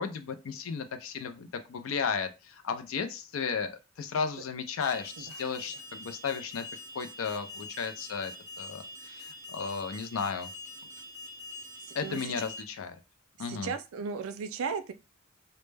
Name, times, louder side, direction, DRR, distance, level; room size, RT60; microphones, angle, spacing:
voice 1, 0.0-6.6 6.9-10.5 11.9-13.0 13.4-13.7, left 6 dB, 80° left, 9 dB, 0.4 m, -34 dB
Alarm, 4.8-12.6, left 2 dB, 15° right, 0.4 m, -45 dB
voice 2, 5.2-5.5 11.8-12.3 13.4-14.9, right 5 dB, 90° right, 10 dB, 0.4 m, -36 dB
2.1 x 2.1 x 3.2 m, 0.28 s
head